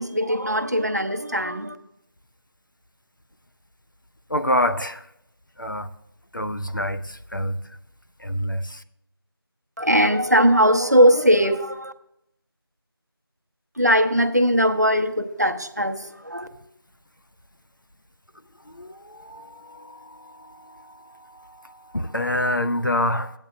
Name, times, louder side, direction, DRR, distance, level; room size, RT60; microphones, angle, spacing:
voice 1, 0.0-1.8 9.8-11.9 13.8-16.5, equal, 45° right, 0.7 m, -20 dB
voice 2, 4.3-5.0 5.6-5.9 6.3-7.6 8.2-8.8 18.7-20.9 21.3-23.3, left 1 dB, 55° left, 0.6 m, -27 dB
16.0 x 8.8 x 2.3 m
figure-of-eight pair, 180°, 13 cm